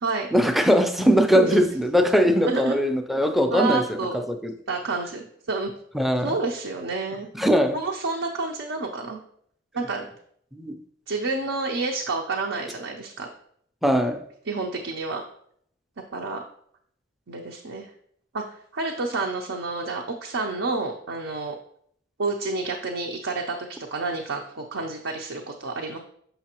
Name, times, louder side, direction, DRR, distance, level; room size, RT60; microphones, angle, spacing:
voice 1, 0.3-4.5 5.9-6.4 7.4-7.8 10.5-10.8 13.8-14.2, equal, ahead, 7 dB, 0.4 m, -21 dB
voice 2, 2.4-2.7 3.5-4.4 4.7-5.7 6.2-7.3 7.7-9.2 9.7-10.1 11.1-13.3 14.5-15.2 16.1-16.4 17.3-17.9 18.3-18.4 18.7-21.5 22.2-26.0, right 3 dB, 70° right, 0 dB, 0.6 m, -29 dB
6.8 x 5.5 x 2.9 m, 0.67 s
head